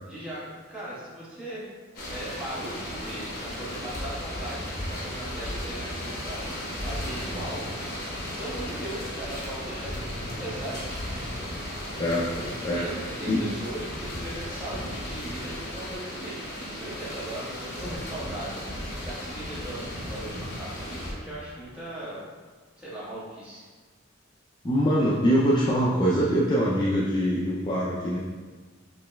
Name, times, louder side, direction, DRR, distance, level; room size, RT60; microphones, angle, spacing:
voice 1, 0.0-1.6 2.1-6.4 6.8-7.7 8.4-10.8 12.3-22.2 22.8-23.7, right 1 dB, 5° right, -10 dB, 1.3 m, -38 dB
sound 1, 1.9-21.1, left 1 dB, 50° left, 1.0 m, -35 dB
voice 2, 12.0-12.3 12.6-12.9 13.2-13.5 24.6-28.2, equal, 25° left, -6 dB, 0.4 m, -23 dB
5.3 x 3.0 x 2.2 m, 1.4 s
head